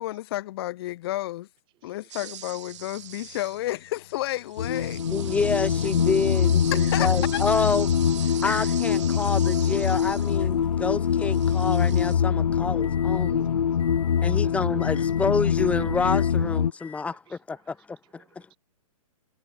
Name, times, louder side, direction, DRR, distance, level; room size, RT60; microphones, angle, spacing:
voice 1, 0.0-1.5 1.8-5.0 6.7-7.4, left 16 dB, 45° left, 0.8 m, -31 dB
voice 2, 1.8-2.1 3.3-3.4 5.3-5.4 8.3-8.4 9.0-9.3 9.6-9.8 11.6-11.7 12.5-12.6 13.6-15.2 16.9-18.6, right 17 dB, 25° right, 3.6 m, -64 dB
sound 1, 2.1-3.9 4.2-10.6 11.0-12.1, right 12 dB, 55° right, 0.8 m, -42 dB
sound 2, 2.7-13.4 13.8-14.4 14.8-15.4 15.8-16.4 16.8-17.0, left 9 dB, 60° left, 4.1 m, -53 dB
sound 3, 4.6-16.7, left 8 dB, 80° left, 0.5 m, -24 dB
voice 3, 5.1-8.1 8.4-13.6 14.2-18.2, left 4 dB, 5° left, 0.7 m, -28 dB
hypercardioid pair, 125°, 18 cm